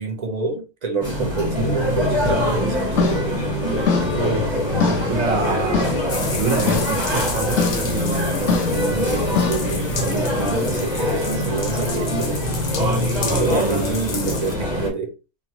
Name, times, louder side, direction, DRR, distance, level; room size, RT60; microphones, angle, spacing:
voice 1, 0.0-3.3 8.6-12.4 13.3-15.1, right 3 dB, 50° right, 0.5 m, -28 dB
sound 1, 1.0-14.9, equal, 25° right, 0.9 m, -23 dB
sound 2, 2.2-10.1, left 5 dB, 70° left, 0.9 m, -26 dB
voice 2, 4.1-6.0 6.3-8.6 13.2-13.9, right 4 dB, 80° right, 1.4 m, -27 dB
sound 3, 6.1-14.5, left 4 dB, 50° left, 0.5 m, -32 dB
3.2 x 2.2 x 2.8 m
omnidirectional pair, 1.4 m